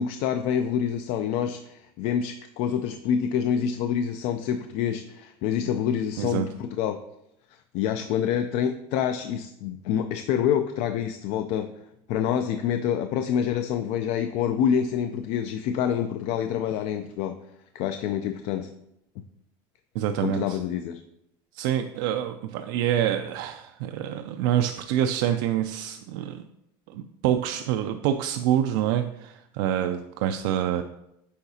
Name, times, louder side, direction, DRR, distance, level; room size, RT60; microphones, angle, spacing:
voice 1, 0.0-7.0 7.7-11.7 12.1-17.4 17.7-18.7 20.2-21.0, left 8 dB, 60° left, 8 dB, 0.4 m, -27 dB
voice 2, 6.2-6.5 19.9-20.6 21.5-26.4 26.9-30.8, right 10 dB, 75° right, 7 dB, 0.4 m, -26 dB
8.3 x 4.8 x 2.8 m, 0.82 s
supercardioid pair, 130°, 12 cm